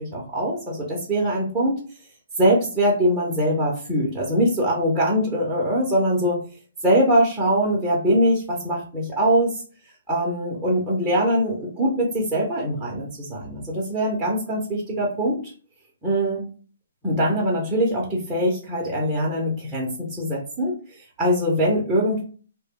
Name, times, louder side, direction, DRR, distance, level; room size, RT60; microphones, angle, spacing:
voice 1, 0.0-1.8 2.4-6.4 6.8-9.5 10.1-15.4 16.0-16.4 17.0-20.7 21.2-22.2, equal, 10° right, -6 dB, 0.7 m, -22 dB
2.2 x 2.1 x 3.6 m, 0.39 s
hypercardioid pair, 155°, 0 cm